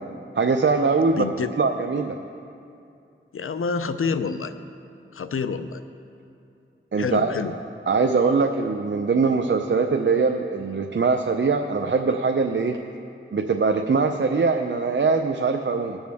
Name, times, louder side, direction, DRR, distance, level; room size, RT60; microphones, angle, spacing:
voice 1, 0.4-1.2 1.6-2.2 6.9-7.3 7.9-12.8 13.3-16.0, right 4 dB, 60° right, 4 dB, 0.6 m, -22 dB
voice 2, 1.1-1.5 3.3-4.5 5.1-5.8 7.0-7.6, left 5 dB, 80° left, 10 dB, 0.6 m, -27 dB
20.0 x 7.1 x 3.5 m, 2.6 s
cardioid pair, 45°, 21 cm